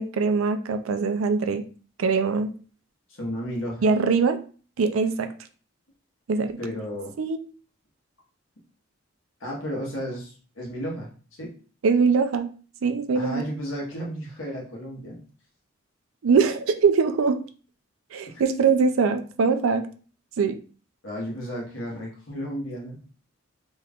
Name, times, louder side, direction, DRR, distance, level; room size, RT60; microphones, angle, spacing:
voice 1, 0.0-1.6 2.0-2.5 3.8-4.4 4.8-5.3 6.3-6.6 7.2-7.4 11.8-12.5 12.8-13.4 16.2-17.5 18.1-19.9 20.4-20.6, right 5 dB, 90° right, 8 dB, 0.4 m, -22 dB
voice 2, 3.1-3.8 6.6-7.1 9.4-11.5 13.1-15.2 18.3-18.4 21.0-23.0, equal, 70° left, -2 dB, 1.1 m, -33 dB
3.0 x 2.4 x 3.5 m, 0.39 s
head